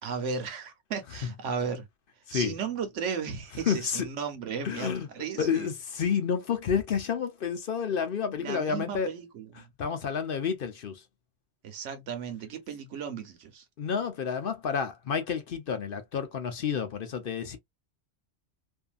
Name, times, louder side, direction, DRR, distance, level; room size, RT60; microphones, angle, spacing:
voice 1, 0.0-1.9 2.3-5.7 8.4-9.7 11.6-13.6, right 6 dB, 85° right, 1.1 m, -35 dB
voice 2, 3.7-4.1 4.6-5.1 5.4-9.1 9.6-11.0 13.8-17.6, left 7 dB, 55° left, 0.8 m, -30 dB
2.7 x 2.5 x 2.3 m
omnidirectional pair, 1.2 m